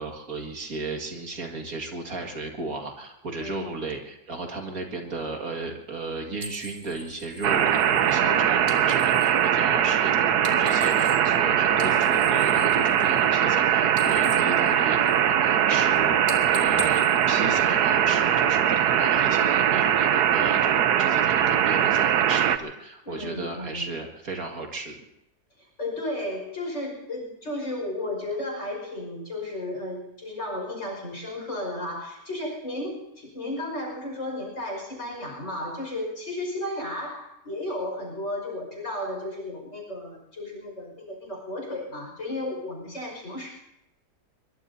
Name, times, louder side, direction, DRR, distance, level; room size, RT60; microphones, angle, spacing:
voice 1, 0.0-24.9, right 3 dB, 65° right, 2 dB, 2.4 m, -35 dB
voice 2, 3.4-3.9 8.2-8.9 23.0-23.9 25.6-43.5, left 1 dB, 45° left, 0 dB, 5.8 m, -34 dB
sound 1, 6.4-9.4 10.3-11.4 11.7-13.6 13.8-15.4 15.8-16.0 16.2-18.1, right 2 dB, 25° right, 1.8 m, -39 dB
sound 2, 7.4-22.6, right 9 dB, 80° right, 1.3 m, -21 dB
23.0 x 22.5 x 2.8 m, 0.82 s
omnidirectional pair, 1.7 m